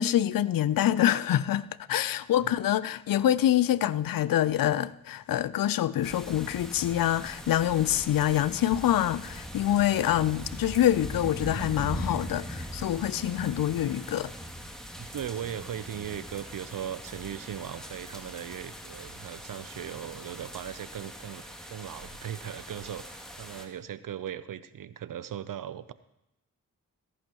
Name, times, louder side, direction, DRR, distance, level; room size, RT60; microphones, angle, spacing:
voice 1, 0.0-14.3, left 12 dB, 80° left, 0.5 m, -26 dB
sound 1, 6.0-23.6, equal, ahead, 2.5 m, -41 dB
voice 2, 15.0-25.9, right 10 dB, 70° right, 0.7 m, -38 dB
17.0 x 11.0 x 3.0 m
supercardioid pair, 40°, 34 cm